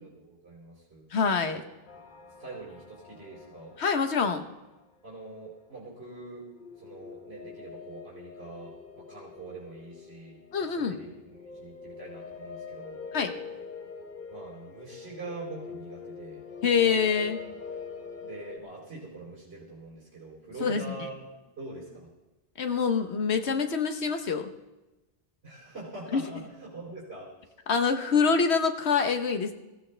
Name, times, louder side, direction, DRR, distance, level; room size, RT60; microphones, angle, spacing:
voice 1, 0.0-1.2 1.5-1.7 1.9-2.0 2.4-3.8 5.0-6.5 6.8-13.1 14.3-16.5 18.2-21.1 21.6-22.1 25.4-27.3, right 3 dB, 75° right, -6 dB, 3.8 m, -44 dB
voice 2, 1.1-1.6 3.8-4.4 10.5-11.0 13.1-13.3 16.6-17.4 20.6-20.8 22.6-24.5 26.1-26.2 27.7-29.5, left 5 dB, 90° left, 7 dB, 1.3 m, -25 dB
sound 1, 1.9-5.3 6.5-18.6, left 5 dB, 50° left, 1.1 m, -44 dB
21.5 x 14.5 x 3.3 m, 1.0 s
omnidirectional pair, 1.1 m